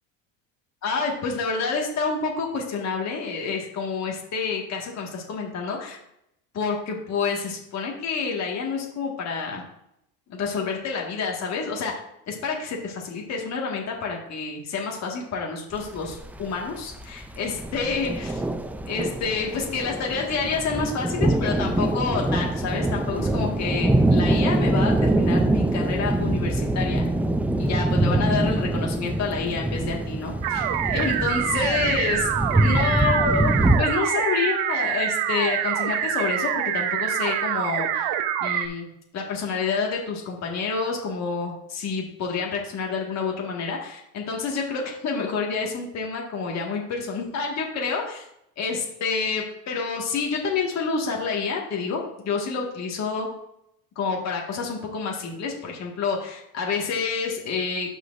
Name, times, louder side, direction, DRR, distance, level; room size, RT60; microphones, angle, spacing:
voice 1, 0.8-6.0 6.5-9.6 10.3-11.9 12.3-18.4 18.8-27.1 27.6-38.1 38.4-38.9 39.1-48.2 48.6-53.3 54.0-58.0, left 4 dB, 45° left, -1 dB, 1.8 m, -28 dB
sound 1, 15.7-33.8, right 1 dB, 5° right, 0.3 m, -24 dB
sound 2, 30.4-38.7, right 10 dB, 80° right, 0.8 m, -26 dB
14.0 x 5.0 x 2.6 m, 0.78 s
cardioid pair, 120°, 37 cm